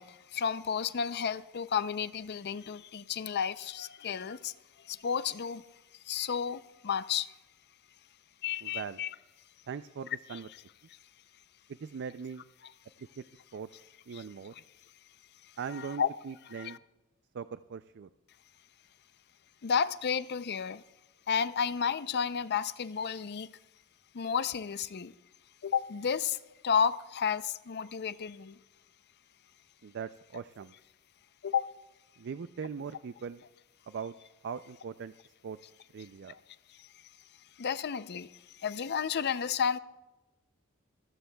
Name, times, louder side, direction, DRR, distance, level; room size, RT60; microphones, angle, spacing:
voice 1, 0.0-4.5 4.8-5.6 6.1-7.3 8.4-9.1 10.3-10.4 12.6-12.7 14.1-14.2 15.7-16.1 16.5-16.8 19.6-20.8 21.3-23.5 24.1-25.1 25.6-26.4 26.6-28.6 31.4-31.7 36.3-36.4 36.8-36.9 37.6-39.8, left 7 dB, 50° left, 0.5 m, -32 dB
voice 2, 8.6-9.0 9.7-10.5 11.8-12.4 13.2-13.3 13.5-13.7 14.1-14.5 15.6-16.8 17.3-18.1 29.8-30.7 32.2-33.4 33.9-34.1 34.4-35.1 35.4-35.6 35.9-36.3, right 6 dB, 50° right, 0.4 m, -40 dB
28.5 x 15.0 x 2.3 m
head